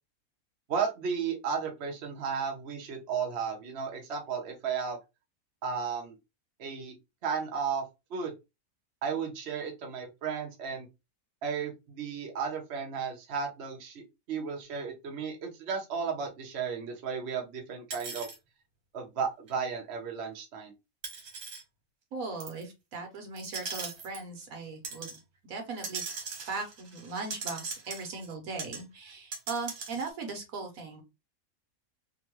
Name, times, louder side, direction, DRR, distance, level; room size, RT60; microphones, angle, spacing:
voice 1, 0.7-5.0 5.6-6.1 6.6-6.9 7.2-7.8 8.1-8.3 9.0-10.9 11.4-14.0 14.3-18.3 18.9-20.7, right 6 dB, 55° right, 1 dB, 1.0 m, -34 dB
sound 1, 17.9-18.4 19.5-19.6 21.0-21.6 22.4-22.6 23.4-24.2 24.8-25.2 25.8-28.3 28.6-28.8 29.1-30.1, right 4 dB, 90° right, 1.5 m, -40 dB
voice 2, 22.1-25.2 25.5-26.0 26.5-31.0, right 3 dB, 70° right, 3 dB, 1.4 m, -38 dB
3.6 x 2.2 x 2.9 m, 0.24 s
omnidirectional pair, 1.5 m